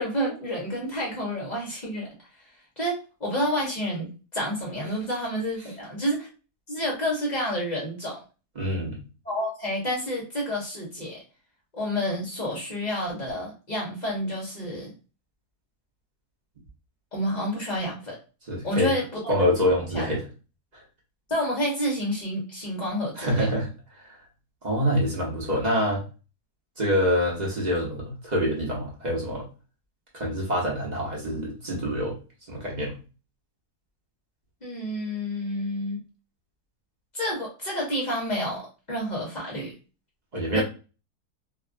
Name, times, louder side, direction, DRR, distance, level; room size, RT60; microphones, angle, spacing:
voice 1, 0.0-2.1 2.8-6.3 6.7-8.2 9.2-11.2 11.7-14.9 17.1-18.2 18.6-19.4 19.9-20.1 21.3-23.5 34.6-36.0 37.1-39.7 40.5-40.6, equal, 35° left, -3 dB, 0.8 m, -29 dB
voice 2, 8.6-9.0 18.5-18.9 19.3-20.2 23.2-23.7 24.0-24.2 24.6-26.0 26.8-29.4 30.1-32.2 32.5-33.0 40.3-40.6, equal, 40° right, -3 dB, 0.7 m, -26 dB
2.6 x 2.4 x 2.4 m, 0.33 s
omnidirectional pair, 1.7 m